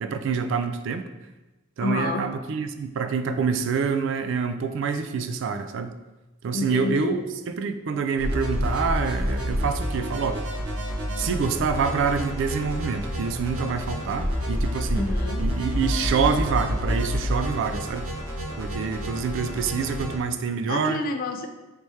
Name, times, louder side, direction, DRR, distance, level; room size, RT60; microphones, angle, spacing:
voice 1, 0.0-1.1 1.8-5.9 6.4-7.2 7.6-10.4 11.2-15.1 15.4-18.1 18.6-21.0, right 5 dB, 60° right, 9 dB, 0.3 m, -26 dB
voice 2, 1.8-2.3 6.5-7.3 14.9-15.5 20.7-21.5, left 2 dB, 45° left, 5 dB, 0.4 m, -29 dB
sound 1, 8.2-20.2, equal, 80° right, 1.1 m, -28 dB
3.4 x 3.1 x 4.2 m, 1.1 s
head